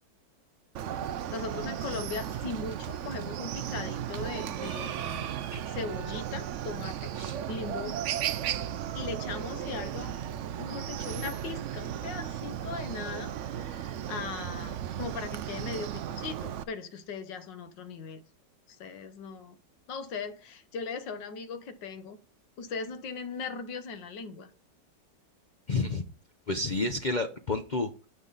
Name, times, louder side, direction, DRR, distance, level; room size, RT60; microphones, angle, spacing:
Chicken rooster, 0.7-16.6, right 10 dB, 75° right, 0.7 m, -35 dB
voice 1, 1.3-5.3 5.7-7.1 7.5-8.0 8.9-10.1 10.6-18.2 18.7-19.6 19.9-22.2 22.6-24.5, left 5 dB, 85° left, 1.7 m, -39 dB
voice 2, 25.7-26.0 26.5-28.1, left 3 dB, 55° left, 0.4 m, -30 dB
9.6 x 7.3 x 4.0 m
omnidirectional pair, 1.9 m